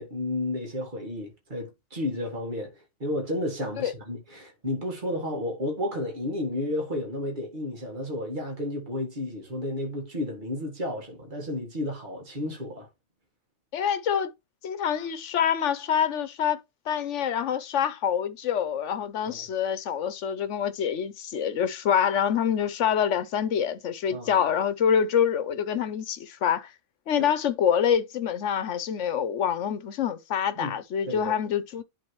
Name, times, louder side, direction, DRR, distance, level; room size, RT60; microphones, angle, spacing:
voice 1, 0.0-12.9 19.3-19.5 24.1-24.5 27.2-27.3 30.6-30.8 31.1-31.3, left 1 dB, 40° right, 1.9 m, -32 dB
voice 2, 13.7-14.3 14.6-16.6 16.9-26.7 27.1-31.8, left 8 dB, 75° left, 1.1 m, -26 dB
11.0 x 3.8 x 3.1 m
omnidirectional pair, 1.2 m